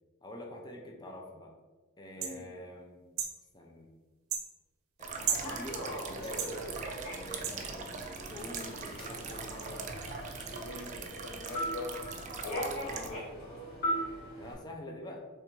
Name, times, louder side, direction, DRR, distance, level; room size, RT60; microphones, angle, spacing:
voice 1, 0.2-1.5 2.0-3.1 3.5-3.9 5.0-6.6 7.1-9.9 10.9-11.3 12.8-13.2 14.4-15.2, left 1 dB, 20° left, 0 dB, 0.5 m, -46 dB
sound 1, 2.2-2.4 3.2-3.4 4.3-4.5 5.3-5.5 6.4-6.5 7.4-7.6 8.5-8.6, right 7 dB, 85° right, 0.6 m, -33 dB
sound 2, 5.0-13.1, right 5 dB, 35° right, 0.4 m, -42 dB
Human voice / Subway metro underground, 5.1-14.5, equal, 45° left, 1.4 m, -40 dB
voice 2, 10.5-11.9 12.4-12.7 13.0-13.5, left 3 dB, 80° left, 5 dB, 0.5 m, -43 dB
3.4 x 2.6 x 4.5 m, 1.3 s
head